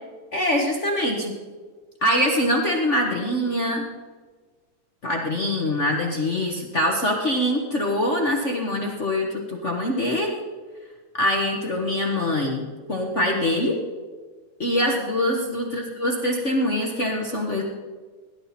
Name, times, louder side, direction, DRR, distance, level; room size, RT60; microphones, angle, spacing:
voice 1, 0.3-1.3 2.0-3.8 5.0-10.3 11.1-13.8 14.6-17.6, left 1 dB, 60° left, 1 dB, 0.7 m, -24 dB
18.0 x 11.0 x 4.3 m, 1.4 s
omnidirectional pair, 3.5 m